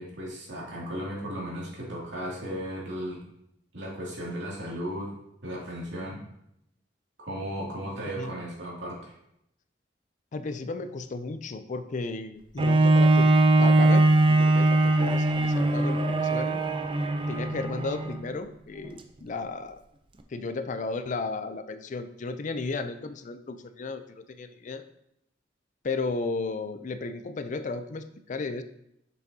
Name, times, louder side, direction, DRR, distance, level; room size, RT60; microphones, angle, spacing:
voice 1, 0.0-3.2 3.7-5.1 5.4-6.2 7.2-9.1, equal, 80° right, -5 dB, 2.4 m, -35 dB
voice 2, 10.3-13.3 13.6-16.6 17.3-19.8 20.3-24.0 24.3-24.8 25.8-28.6, left 3 dB, 40° left, 10 dB, 0.4 m, -34 dB
Bowed string instrument, 12.6-18.2 18.8-18.9, right 2 dB, 30° right, 0.5 m, -21 dB
7.0 x 6.2 x 2.8 m, 0.78 s
head